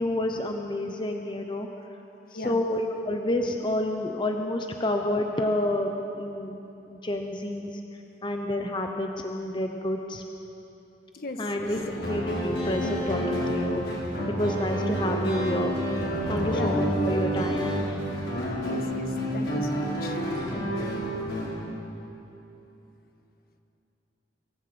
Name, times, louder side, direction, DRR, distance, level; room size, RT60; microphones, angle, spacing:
voice 1, 0.0-1.7 2.4-6.5 6.9-7.7 8.2-10.2 11.4-11.8 12.1-13.8 14.3-15.8 16.2-17.8, left 1 dB, 25° left, 3 dB, 1.0 m, -29 dB
voice 2, 11.1-12.1 16.5-16.8 18.6-20.2, left 1 dB, 60° left, 5 dB, 1.6 m, -37 dB
sound 1, 11.6-21.5, equal, 75° left, 6.1 m, -29 dB
24.0 x 14.5 x 7.8 m, 3.0 s
head